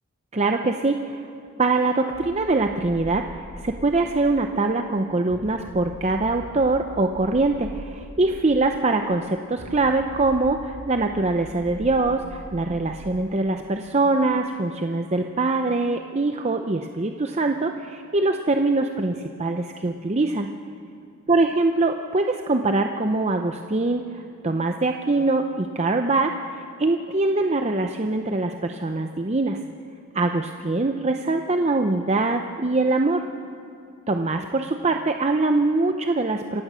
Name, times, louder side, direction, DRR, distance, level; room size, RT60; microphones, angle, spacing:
voice 1, 0.3-1.3 1.6-20.5 21.3-29.6 30.1-33.2 34.1-36.6, right 2 dB, 30° right, 5 dB, 0.6 m, -23 dB
sound 1, 2.1-4.4 5.3-8.5 9.6-13.1, equal, 75° right, 4.0 m, -42 dB
27.5 x 15.5 x 6.3 m, 2.7 s
head